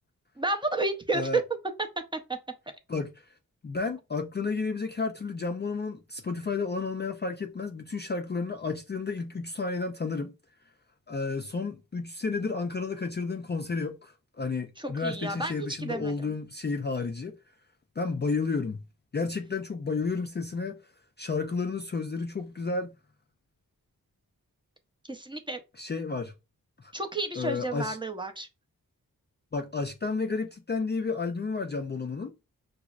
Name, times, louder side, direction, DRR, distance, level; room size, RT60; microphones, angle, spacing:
voice 1, 0.4-1.4 2.1-2.2 14.8-16.4 25.1-25.6 26.9-28.5, right 2 dB, 15° right, 0.6 m, -31 dB
voice 2, 3.6-10.3 11.1-17.4 18.0-18.8 19.1-20.8 21.2-22.9 25.8-26.3 26.8-26.9 27.4-28.0 29.5-32.3, left 4 dB, 30° left, 0.4 m, -31 dB
5.9 x 2.0 x 2.3 m
wide cardioid pair, 80°, 36 cm